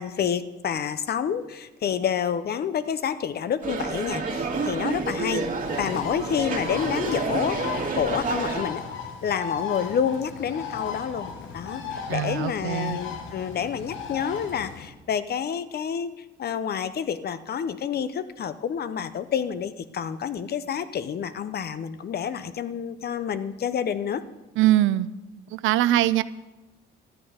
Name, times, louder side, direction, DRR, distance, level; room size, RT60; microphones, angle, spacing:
voice 1, 0.0-5.5 5.8-7.6 7.9-8.8 9.2-24.2, left 8 dB, 55° left, 13 dB, 0.7 m, -28 dB
sound 1, 3.6-8.6, right 4 dB, 45° right, 2.0 m, -29 dB
Bird, 5.6-14.9, left 6 dB, 75° left, 1.2 m, -36 dB
voice 2, 12.1-13.0 24.6-25.1 25.5-26.2, right 14 dB, 85° right, 15 dB, 0.5 m, -22 dB
13.0 x 8.6 x 5.1 m, 1.1 s
cardioid pair, 90°, 20 cm